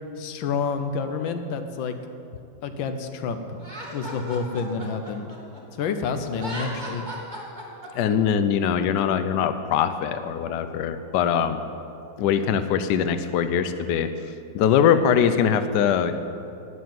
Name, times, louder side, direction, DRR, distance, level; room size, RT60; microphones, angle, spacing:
voice 1, 0.2-1.9 2.6-3.6 3.9-5.3 5.8-7.1, left 5 dB, 85° left, 8 dB, 1.7 m, -28 dB
Laughter, 3.6-5.9 6.3-8.1, equal, 25° right, 2.3 m, -36 dB
voice 2, 7.9-11.6 12.2-14.1 14.5-16.1, left 8 dB, 70° left, 10 dB, 1.2 m, -22 dB
12.0 x 8.3 x 9.3 m, 2.7 s
omnidirectional pair, 2.0 m